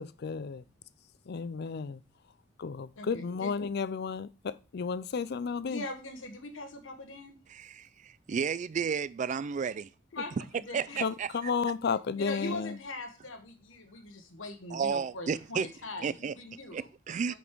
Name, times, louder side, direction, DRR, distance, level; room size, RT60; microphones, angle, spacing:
voice 1, 0.0-0.6 1.3-2.0 2.6-5.8 10.1-10.2 11.0-12.8, left 5 dB, 55° left, 0.4 m, -33 dB
voice 2, 3.0-3.5 5.7-7.4 10.1-11.0 12.2-16.9 17.3-17.4, left 2 dB, 85° left, 1.3 m, -41 dB
voice 3, 7.5-9.9 10.7-11.3 14.7-15.7 16.0-16.3 16.7-17.3, right 6 dB, 40° right, 0.3 m, -32 dB
6.1 x 5.4 x 4.6 m
head